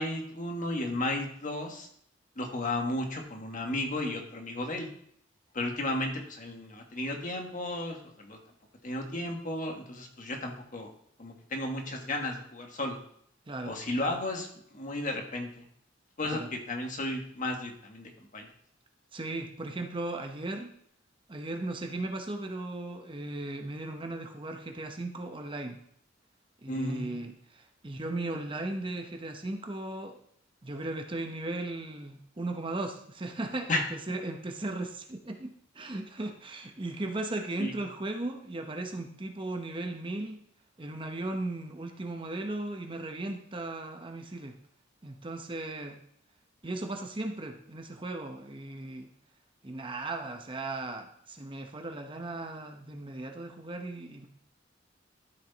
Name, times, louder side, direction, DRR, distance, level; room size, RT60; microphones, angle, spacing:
voice 1, 0.0-1.9 2.4-4.9 5.5-8.4 8.8-10.9 11.2-13.0 13.7-14.5 14.7-15.6 16.2-18.5 26.7-27.2 33.7-33.8 37.6-37.7, left 1 dB, 45° left, 2 dB, 1.5 m, -34 dB
voice 2, 13.5-14.2 16.3-16.5 19.1-20.7 21.3-25.8 26.6-30.2 30.6-40.4 40.8-44.6 45.0-46.0 46.6-49.1 49.6-54.3, right 2 dB, 25° right, 4 dB, 0.8 m, -37 dB
13.0 x 4.7 x 4.0 m, 0.67 s
head